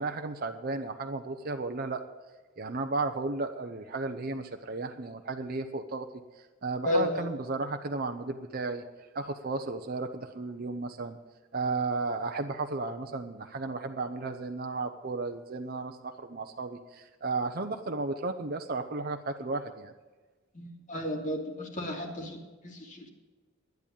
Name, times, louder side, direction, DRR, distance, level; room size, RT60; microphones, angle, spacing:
voice 1, 0.0-2.0 2.6-6.1 6.4-8.8 9.1-11.2 11.5-19.9, right 3 dB, 50° right, 5 dB, 0.8 m, -34 dB
voice 2, 6.8-7.3 20.5-23.1, left 1 dB, 40° left, 2 dB, 2.6 m, -33 dB
11.0 x 10.5 x 7.2 m, 1.3 s
head